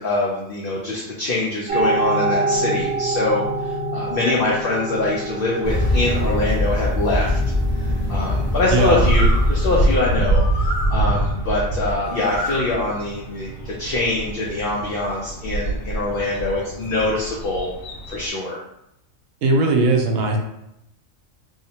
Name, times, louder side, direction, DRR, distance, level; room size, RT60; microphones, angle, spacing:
voice 1, 0.0-7.4 7.8-17.7 18.1-18.6, left 2 dB, 65° left, -4 dB, 0.5 m, -24 dB
sound 1, 1.7-16.4, right 2 dB, 60° right, 0.7 m, -29 dB
sound 2, 5.6-10.6, left 1 dB, 25° right, 0.3 m, -23 dB
Bird, 8.7-18.3, right 1 dB, 85° left, 1.0 m, -24 dB
voice 2, 19.4-20.4, right 2 dB, 90° right, 2 dB, 1.0 m, -18 dB
2.7 x 2.0 x 2.7 m, 0.82 s
omnidirectional pair, 1.4 m